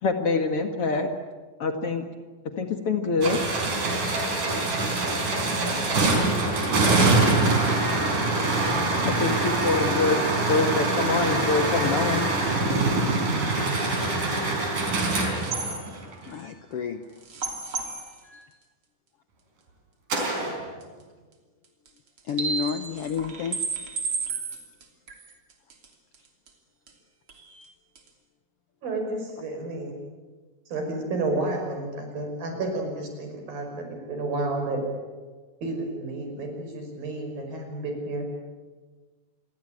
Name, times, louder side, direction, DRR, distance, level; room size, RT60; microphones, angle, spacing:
voice 1, 0.0-1.1 1.6-2.0 2.6-3.4 9.0-10.2 10.5-12.2, left 3 dB, 45° left, 6 dB, 2.4 m, -25 dB
sound 1, 3.2-16.3 20.1-20.6, right 2 dB, 65° right, 5.9 m, -24 dB
sound 2, 15.4-15.9 17.2-18.1 20.1-20.2 20.8-20.9 21.9-22.0 22.2-25.9 26.1-26.2 26.5-26.6 26.9-27.0 27.3-27.6 28.0-28.1, right 5 dB, 40° right, 3.6 m, -32 dB
voice 2, 16.3-17.0 22.3-23.6, left 7 dB, 70° left, 9 dB, 1.4 m, -30 dB
voice 3, 28.8-30.0 30.7-34.8 35.6-38.3, right 2 dB, 85° right, 3 dB, 7.3 m, -31 dB
28.0 x 22.5 x 9.0 m, 1.4 s
omnidirectional pair, 4.0 m